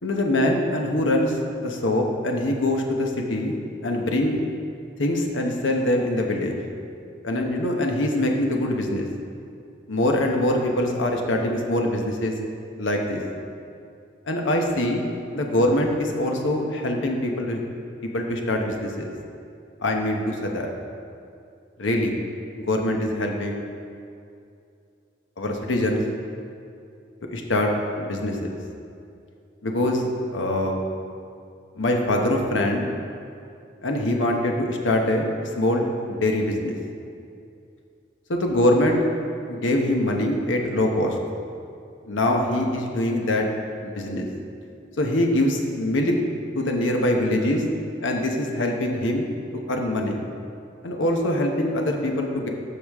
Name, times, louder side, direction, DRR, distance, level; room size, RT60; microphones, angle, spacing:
voice 1, 0.0-3.5 3.8-4.4 5.0-6.6 7.2-9.1 9.9-12.3 12.8-13.2 14.3-17.6 18.1-19.1 19.8-20.7 21.8-22.1 22.6-23.6 25.4-26.0 27.3-27.7 28.0-28.5 29.6-30.8 31.8-32.9 33.8-36.8 38.3-39.0 39.5-41.2 42.1-43.5 43.8-44.3 45.0-46.1 46.5-47.6 48.0-49.3 49.7-50.2 50.8-52.5, left 1 dB, 85° left, 2 dB, 1.0 m, -23 dB
14.0 x 5.1 x 3.6 m, 2.5 s
head